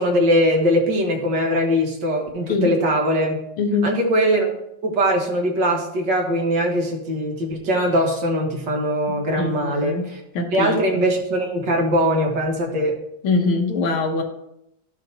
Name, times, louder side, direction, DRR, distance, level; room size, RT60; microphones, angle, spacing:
voice 1, 0.0-3.4 3.8-4.5 4.8-10.2 10.5-12.9, equal, 60° right, 0 dB, 2.0 m, -21 dB
voice 2, 3.6-4.0 9.4-10.1 10.4-10.8 13.2-14.2, left 3 dB, 85° left, 4 dB, 1.9 m, -22 dB
13.0 x 5.7 x 2.8 m, 0.79 s
omnidirectional pair, 2.3 m